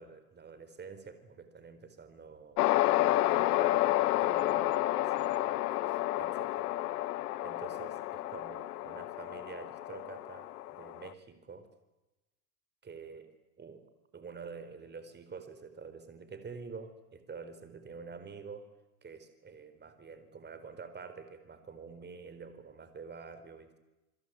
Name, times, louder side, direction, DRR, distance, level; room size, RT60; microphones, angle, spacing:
voice 1, 0.0-2.6 2.9-6.7 7.4-11.7 12.8-13.3 13.6-13.8 14.1-18.7 19.0-23.8, right 5 dB, 20° right, 11 dB, 4.4 m, -47 dB
sound 1, 2.6-11.1, left 16 dB, 70° left, 1.2 m, -30 dB
28.5 x 22.0 x 9.4 m, 1.0 s
hypercardioid pair, 105°, 47 cm